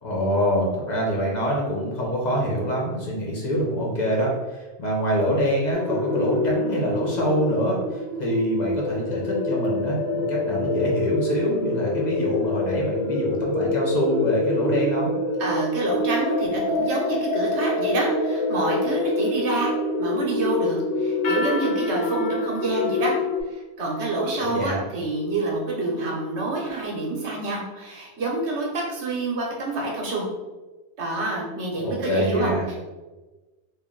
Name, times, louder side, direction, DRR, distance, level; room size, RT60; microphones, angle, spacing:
voice 1, 0.0-15.1 24.4-24.8 31.8-32.6, equal, 45° left, -3 dB, 0.9 m, -25 dB
sound 1, 5.7-23.4, left 2 dB, 80° left, 0.9 m, -26 dB
voice 2, 15.4-19.7 20.0-23.1 23.5-30.2 31.0-32.8, right 2 dB, 80° right, -2 dB, 1.2 m, -27 dB
3.0 x 2.6 x 3.7 m, 1.2 s
omnidirectional pair, 1.1 m